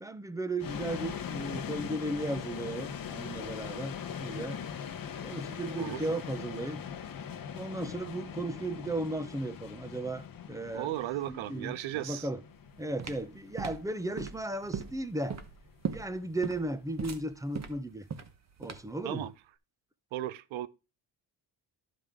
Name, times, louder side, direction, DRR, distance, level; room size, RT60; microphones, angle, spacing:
voice 1, 0.0-4.6 5.2-6.8 7.5-10.9 11.3-12.4 12.8-15.4 15.9-18.1 18.6-19.3, right 1 dB, 5° right, 0.5 m, -35 dB
sound 1, 0.6-17.6, left 8 dB, 45° left, 0.9 m, -41 dB
voice 2, 10.7-12.3 19.0-19.3 20.1-20.7, right 14 dB, 80° right, 0.7 m, -35 dB
sound 2, 12.5-19.0, right 6 dB, 35° right, 1.0 m, -39 dB
12.0 x 5.1 x 3.6 m
cardioid pair, 120°, 46 cm